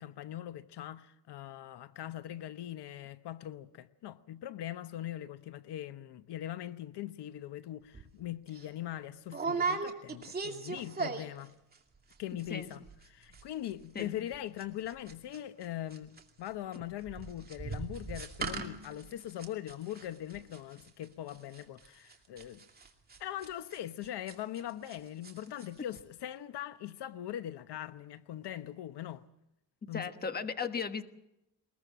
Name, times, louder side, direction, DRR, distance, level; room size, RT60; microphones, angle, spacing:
voice 1, 0.0-11.5 12.2-12.8 13.1-22.6 23.2-29.2 29.9-30.1, left 12 dB, 75° left, 1.0 m, -41 dB
sound 1, 7.9-8.1 8.5-8.7 9.3-11.5 11.7-12.1 12.4-12.5 12.7-13.1 13.3-25.0 25.2-25.7 25.9-26.0, right 4 dB, 20° right, 2.5 m, -38 dB
voice 2, 29.9-31.0, left 5 dB, 25° left, 1.3 m, -36 dB
21.5 x 21.0 x 7.4 m
cardioid pair, 165°, 41 cm